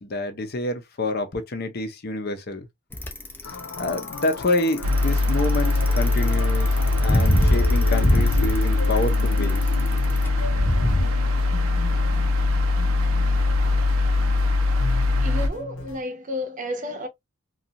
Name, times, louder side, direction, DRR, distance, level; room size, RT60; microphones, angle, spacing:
voice 1, 0.0-2.7 3.8-9.6, left 2 dB, 50° left, 0.6 m, -28 dB
Bicycle, 2.9-11.0, equal, 10° left, 0.4 m, -24 dB
sound 1, 3.4-16.0, left 3 dB, 90° left, 0.6 m, -37 dB
sound 2, 4.8-15.5, left 2 dB, 85° right, 0.6 m, -21 dB
voice 2, 15.2-17.1, left 1 dB, 40° right, 0.7 m, -31 dB
2.5 x 2.3 x 2.7 m
head